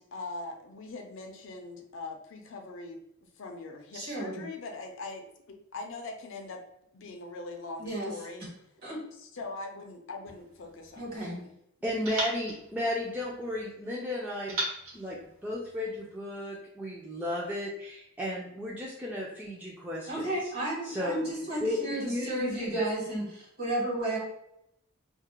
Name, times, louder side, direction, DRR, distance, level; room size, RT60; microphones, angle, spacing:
voice 1, 0.0-5.3 5.7-6.6 6.9-8.5 9.2-11.5, left 3 dB, 65° left, 3 dB, 0.4 m, -42 dB
voice 2, 3.9-4.4 7.8-8.1 8.8-9.0 11.0-11.4 20.1-24.2, right 1 dB, 50° right, -4 dB, 1.2 m, -33 dB
sound 1, 10.2-11.5 12.0-13.7 14.5-16.1, right 1 dB, 85° right, 0.9 m, -39 dB
voice 3, 11.8-14.6 14.9-20.5 20.8-21.3 21.6-22.9, left 1 dB, 10° right, -5 dB, 0.3 m, -34 dB
2.4 x 2.1 x 2.9 m, 0.78 s
head